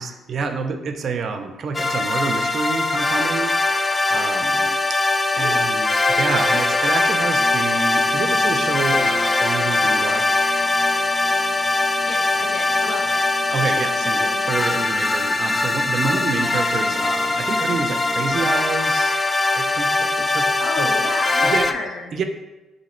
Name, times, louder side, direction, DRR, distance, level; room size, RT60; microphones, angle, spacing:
voice 1, 0.0-3.5 4.1-4.7 5.3-10.2 13.5-19.2 19.5-20.9 21.4-21.7 22.1-22.2, right 5 dB, 55° right, 6 dB, 0.5 m, -28 dB
sound 1, 1.7-21.7, left 2 dB, 20° left, 0.3 m, -21 dB
sound 2, 7.3-18.5, left 1 dB, 40° left, 0.7 m, -39 dB
voice 2, 12.1-13.2 16.1-16.2 20.6-22.1, left 3 dB, 75° left, 1 dB, 0.7 m, -31 dB
4.0 x 2.7 x 4.3 m, 1.1 s
cardioid pair, 90°, 0 cm